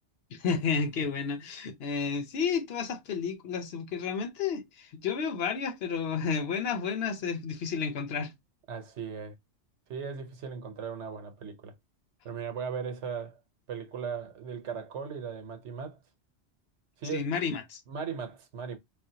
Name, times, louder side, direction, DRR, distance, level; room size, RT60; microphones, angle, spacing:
voice 1, 0.3-8.3 17.1-17.8, left 6 dB, 65° left, 0.9 m, -31 dB
voice 2, 8.7-9.3 9.9-11.7 12.2-13.4 13.7-16.0 17.0-17.3 17.9-18.8, right 6 dB, 80° right, 1.1 m, -37 dB
5.0 x 2.2 x 2.7 m
omnidirectional pair, 1.2 m